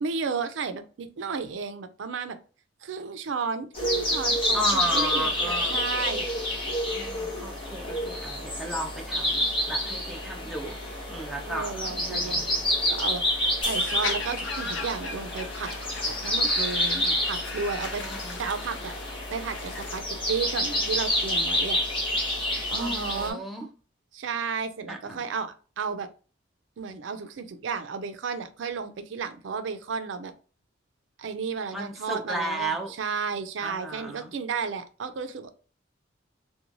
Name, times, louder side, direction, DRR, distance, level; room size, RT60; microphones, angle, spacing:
voice 1, 0.0-2.4 2.8-6.3 11.5-13.2 13.6-15.7 16.1-19.0 19.3-21.8 22.7-23.5 24.1-26.1 26.8-30.3 31.2-35.5, right 5 dB, 75° right, 0.4 m, -33 dB
sound 1, 3.7-23.3, left 1 dB, 30° left, 0.9 m, -28 dB
voice 2, 4.5-5.8 6.9-10.8 11.1-12.4 18.0-18.4 22.7-23.7 24.9-25.2 31.7-32.9 33.6-34.3, right 1 dB, ahead, 0.4 m, -33 dB
sound 2, 13.6-16.9, left 2 dB, 50° left, 1.3 m, -43 dB
sound 3, 13.7-20.0, left 4 dB, 70° left, 0.6 m, -38 dB
3.0 x 2.2 x 2.5 m
head